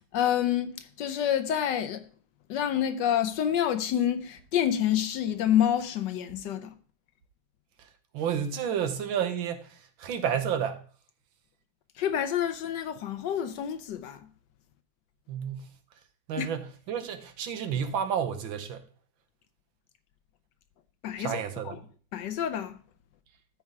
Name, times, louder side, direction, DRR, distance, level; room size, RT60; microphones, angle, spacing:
voice 1, 0.1-2.0 2.5-6.7 12.0-14.3 16.4-16.5 21.0-21.8 22.1-22.8, left 10 dB, 70° left, 1.2 m, -28 dB
voice 2, 8.1-10.8 15.3-15.7 16.3-18.8 21.2-21.8, right 8 dB, 80° right, 1.8 m, -31 dB
13.5 x 4.7 x 3.6 m
omnidirectional pair, 2.1 m